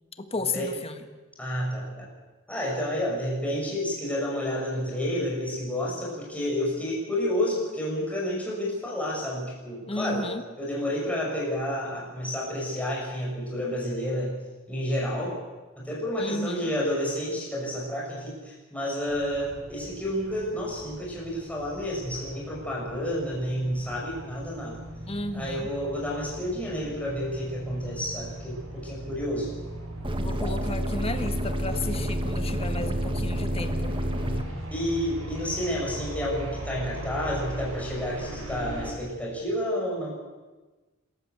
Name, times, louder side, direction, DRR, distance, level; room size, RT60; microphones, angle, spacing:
voice 1, 0.2-1.0 9.9-10.4 16.2-16.7 25.1-25.7 30.2-33.9, left 2 dB, 30° left, 9 dB, 1.5 m, -33 dB
voice 2, 1.4-2.1 2.5-10.3 10.6-14.3 14.7-15.4 15.8-24.8 25.3-29.5 30.2-30.5 34.2-34.4 34.7-40.1, equal, 5° left, -4 dB, 6.2 m, -30 dB
sound 1, 19.1-38.9, right 1 dB, 80° right, 5.7 m, -39 dB
sound 2, 30.0-34.4, equal, 25° right, 1.5 m, -29 dB
26.0 x 14.0 x 8.0 m, 1.2 s
head